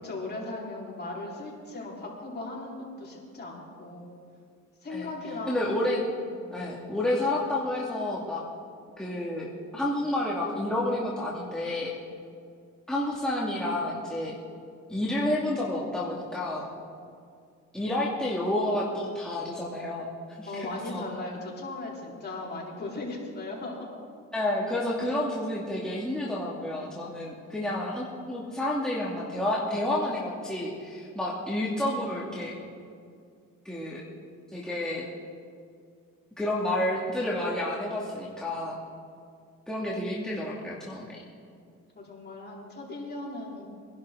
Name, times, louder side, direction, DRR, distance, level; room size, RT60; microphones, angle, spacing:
voice 1, 0.0-4.1 4.8-5.7 6.2-6.5 20.5-23.8 41.9-43.7, left 2 dB, 35° left, -4 dB, 4.6 m, -38 dB
voice 2, 5.5-6.0 6.5-8.4 9.0-9.5 9.7-11.9 12.9-14.4 14.9-16.7 17.7-20.1 20.4-21.0 24.3-32.5 33.6-34.0 34.5-35.1 36.4-38.8 39.7-41.2, left 1 dB, ahead, -6 dB, 2.3 m, -30 dB
24.0 x 11.5 x 3.9 m, 2.3 s
cardioid pair, 90°, 30 cm